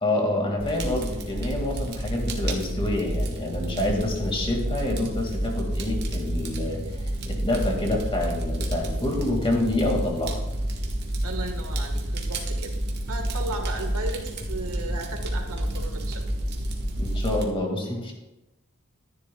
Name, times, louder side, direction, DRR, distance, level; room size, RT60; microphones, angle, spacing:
voice 1, 0.0-10.4 17.0-18.1, left 1 dB, 25° left, 1 dB, 1.9 m, -27 dB
Fire, 0.6-17.4, right 1 dB, 50° right, 1.3 m, -29 dB
voice 2, 11.2-12.7 13.1-16.3, right 2 dB, 75° right, 4 dB, 1.5 m, -35 dB
14.0 x 10.0 x 2.3 m, 0.99 s
head